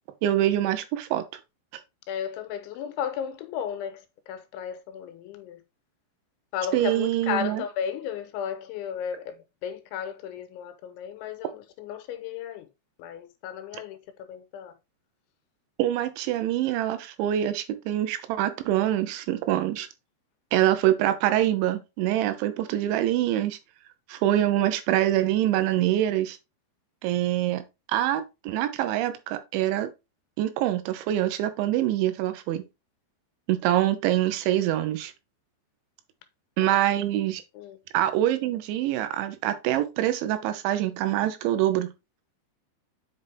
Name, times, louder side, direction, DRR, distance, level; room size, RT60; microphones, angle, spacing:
voice 1, 0.2-1.3 6.7-7.6 15.8-19.9 20.5-23.6 24.1-26.4 27.0-29.9 30.4-32.7 33.5-35.1 36.6-37.4 37.9-41.9, right 13 dB, 85° right, 3.2 m, -25 dB
voice 2, 2.1-5.6 6.5-12.7 13.0-14.7 36.6-36.8 37.5-37.8, left 8 dB, 85° left, 3.3 m, -34 dB
7.7 x 5.4 x 3.4 m
omnidirectional pair, 5.3 m